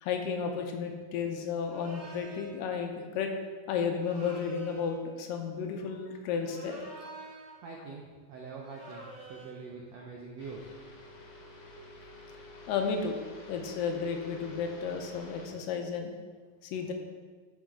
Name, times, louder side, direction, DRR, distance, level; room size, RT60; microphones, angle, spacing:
voice 1, 0.0-3.3 3.7-6.8 12.7-13.2 13.5-16.1 16.6-16.9, left 6 dB, 80° left, 4 dB, 2.3 m, -33 dB
sound 1, 1.6-2.6 4.0-5.0 6.4-7.6 8.6-9.6, right 2 dB, 20° right, 1.0 m, -47 dB
voice 2, 7.6-10.7, right 4 dB, 80° right, -2 dB, 1.5 m, -44 dB
sound 2, 10.4-15.5, left 2 dB, 60° left, 2.1 m, -50 dB
11.5 x 4.9 x 3.7 m, 1.5 s
omnidirectional pair, 4.0 m